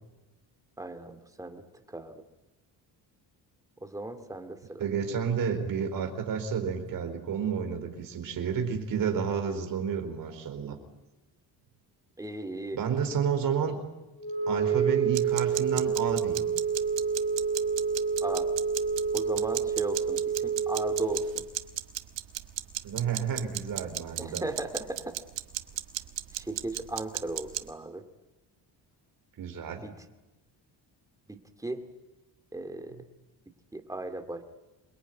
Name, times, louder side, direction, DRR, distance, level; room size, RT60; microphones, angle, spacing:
voice 1, 0.8-1.6 1.9-2.2 3.8-4.8 12.2-12.8 18.2-18.5 19.1-21.4 24.2-25.0 26.3-28.0 29.8-29.9 31.3-31.8 32.5-33.0 33.7-34.4, right 2 dB, 10° right, 6 dB, 2.3 m, -36 dB
voice 2, 4.8-10.8 12.7-13.8 14.5-16.4 22.8-24.5 29.4-29.8, right 7 dB, 50° right, 6 dB, 4.5 m, -30 dB
Wind instrument woodwind instrument, 14.2-21.3, right 6 dB, 15° left, 7.5 m, -28 dB
sound 1, 15.1-27.6, right 14 dB, 90° right, 1.6 m, -35 dB
27.5 x 21.5 x 9.4 m, 1.1 s
cardioid pair, 165°, 42 cm